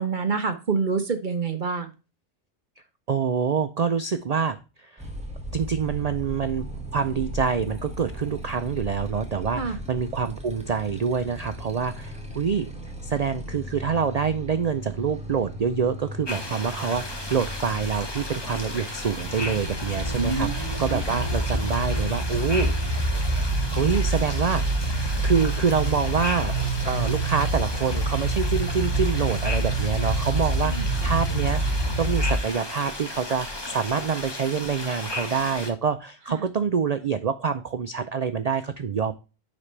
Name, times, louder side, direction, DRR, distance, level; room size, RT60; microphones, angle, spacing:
voice 1, 0.0-1.9 9.6-9.8 20.2-21.0 30.6-30.9 36.3-36.4, right 4 dB, 45° right, 7 dB, 0.9 m, -27 dB
voice 2, 3.1-5.1 5.5-6.6 6.9-12.7 13.0-22.7 23.7-24.6 25.2-26.5 26.8-31.6 32.0-39.1, right 6 dB, 80° right, 10 dB, 0.3 m, -26 dB
Motorcycle, 5.0-21.4, equal, 5° right, 1.5 m, -37 dB
sound 1, 16.2-35.7, left 2 dB, 20° left, 1.2 m, -35 dB
sound 2, 19.2-32.4, right 2 dB, 20° right, 3.0 m, -26 dB
10.0 x 4.2 x 3.2 m, 0.30 s
omnidirectional pair, 1.3 m